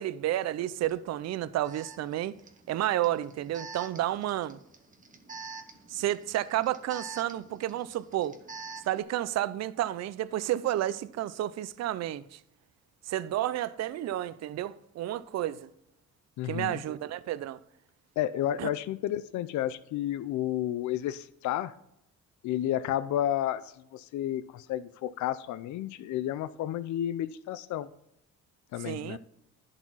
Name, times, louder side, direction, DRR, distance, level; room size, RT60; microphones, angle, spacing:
voice 1, 0.0-2.4 2.7-4.6 5.9-8.4 8.9-12.4 13.1-15.7 16.5-17.6 18.6-18.7 28.8-29.2, right 13 dB, 60° right, 0.5 m, -31 dB
Alarm, 0.8-0.9 1.6-9.0, right 5 dB, 25° right, 1.1 m, -46 dB
voice 2, 16.4-16.8 18.2-21.7 22.4-27.9 28.7-29.2, left 12 dB, 75° left, 0.5 m, -31 dB
11.0 x 4.1 x 6.0 m
cardioid pair, 90°, 30 cm